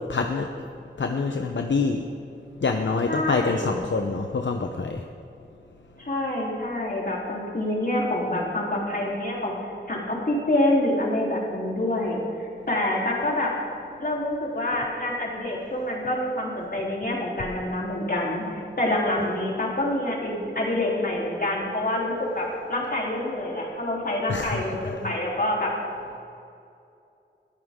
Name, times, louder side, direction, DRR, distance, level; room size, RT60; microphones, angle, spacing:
voice 1, 0.1-0.5 1.0-2.0 2.6-5.0 24.3-25.1, left 4 dB, 70° left, 4 dB, 0.8 m, -26 dB
voice 2, 3.1-3.8 6.0-9.5 9.9-13.5 14.0-25.7, left 1 dB, 50° left, -3 dB, 3.6 m, -27 dB
21.0 x 13.5 x 3.7 m, 2.6 s
wide cardioid pair, 70°, 20 cm